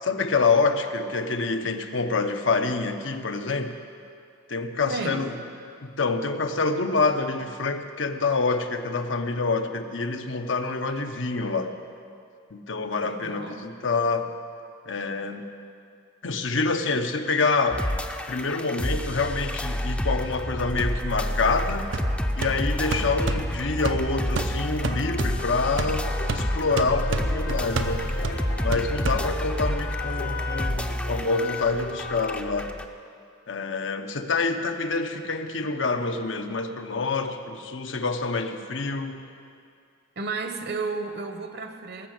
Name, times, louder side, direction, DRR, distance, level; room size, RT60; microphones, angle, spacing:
voice 1, 0.0-3.8 4.5-5.3 5.8-11.7 12.5-14.3 14.9-15.5 16.2-17.8 18.3-21.9 22.4-26.1 26.3-28.2 28.6-32.8 33.5-39.2, left 4 dB, 80° left, 6 dB, 0.9 m, -26 dB
voice 2, 4.9-5.3 13.0-13.6 40.2-42.1, right 4 dB, 60° right, 7 dB, 1.1 m, -32 dB
sound 1, 17.7-32.9, equal, 5° left, 0.5 m, -29 dB
sound 2, 21.9-29.7, right 3 dB, 80° right, 0.7 m, -32 dB
sound 3, 24.8-32.4, left 4 dB, 45° left, 0.9 m, -37 dB
18.5 x 7.2 x 7.7 m, 2.3 s
head